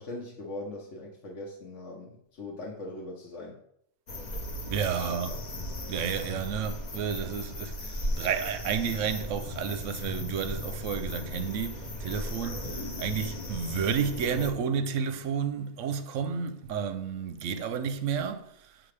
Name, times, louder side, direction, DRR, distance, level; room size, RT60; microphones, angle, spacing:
voice 1, 0.0-3.6 5.3-5.4, left 2 dB, 60° left, 1.2 m, -40 dB
sound 1, 4.1-14.5, left 1 dB, 35° left, 0.8 m, -37 dB
voice 2, 4.7-5.4 5.9-18.8, right 7 dB, 70° right, 0.9 m, -31 dB
sound 2, 12.4-17.0 17.3-17.4, left 1 dB, 85° left, 2.0 m, -47 dB
7.1 x 5.8 x 3.3 m
omnidirectional pair, 1.5 m